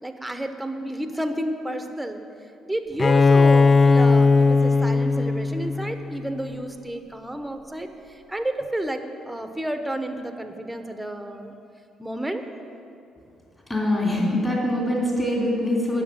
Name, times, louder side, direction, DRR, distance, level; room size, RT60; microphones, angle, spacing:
voice 1, 0.0-2.2 2.6-11.5 12.0-12.5, right 1 dB, 10° right, 7 dB, 1.2 m, -31 dB
Bowed string instrument, 3.0-6.6, left 3 dB, 35° left, 0.4 m, -18 dB
voice 2, 13.7-16.0, left 1 dB, 20° left, -3 dB, 3.4 m, -23 dB
10.0 x 6.8 x 8.7 m, 2.5 s
supercardioid pair, 60°, 0 cm